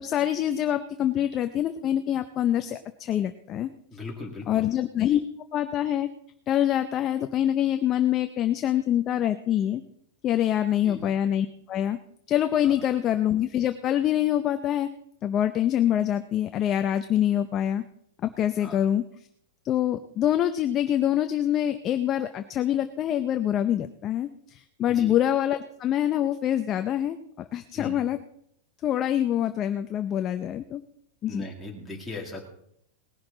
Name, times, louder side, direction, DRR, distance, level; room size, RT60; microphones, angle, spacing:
voice 1, 0.0-3.7 4.5-5.2 5.5-6.1 6.5-9.8 10.2-12.0 12.3-14.9 15.2-17.8 18.2-19.0 19.6-27.2 27.5-28.2 28.8-30.8 31.2-31.4, left 11 dB, 20° left, 8 dB, 0.5 m, -25 dB
voice 2, 3.9-4.7 10.8-11.1 12.6-12.8 18.6-18.8 24.9-25.1 27.7-28.0 31.3-32.5, left 2 dB, 5° left, -2 dB, 2.2 m, -39 dB
19.5 x 11.0 x 3.8 m, 0.69 s
supercardioid pair, 175°, 0 cm